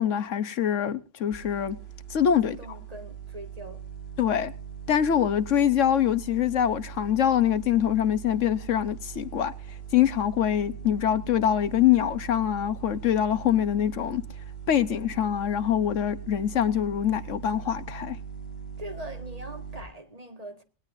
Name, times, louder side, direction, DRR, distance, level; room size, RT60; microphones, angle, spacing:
voice 1, 0.0-1.8 2.1-2.6 4.2-4.5 4.9-9.5 9.9-14.2 14.7-18.2, left 10 dB, 75° left, 1.2 m, -24 dB
sound 1, 1.3-19.8, right 8 dB, 50° left, 3.8 m, -41 dB
voice 2, 2.4-3.8 18.8-20.6, right 1 dB, 30° right, 1.9 m, -42 dB
19.0 x 18.0 x 2.6 m
omnidirectional pair, 1.3 m